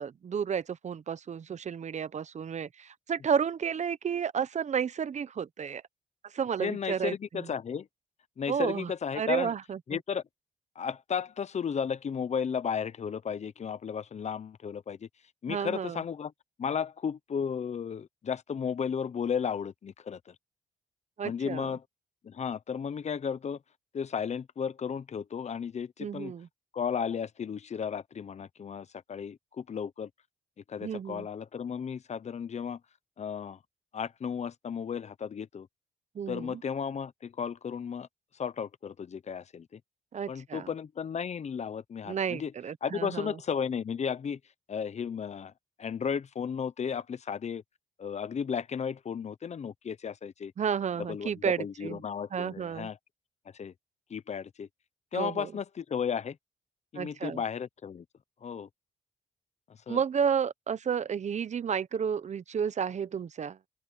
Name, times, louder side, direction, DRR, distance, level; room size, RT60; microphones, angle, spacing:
voice 1, 0.0-5.8 6.2-7.5 8.5-9.8 15.5-16.0 21.2-21.7 26.0-26.5 30.8-31.3 36.1-36.6 40.1-40.7 42.1-43.4 50.6-52.0 52.3-52.9 55.1-55.5 56.9-57.4 59.9-63.6, right 7 dB, 55° right, 1.0 m, -32 dB
voice 2, 6.6-7.9 8.4-9.5 9.9-10.2 10.7-15.1 15.4-16.3 16.6-20.3 21.2-21.8 22.2-23.6 23.9-26.3 26.7-30.1 30.7-32.8 33.2-33.6 33.9-35.7 36.3-38.1 38.4-39.8 40.3-42.5 42.8-44.4 44.7-45.5 45.8-47.6 48.0-50.5 51.1-53.0 53.5-53.7 54.1-54.7 55.1-56.4 56.9-58.0 58.4-58.7 59.9-60.0, left 7 dB, 55° left, 1.0 m, -34 dB
open air
cardioid pair, 65°, 14 cm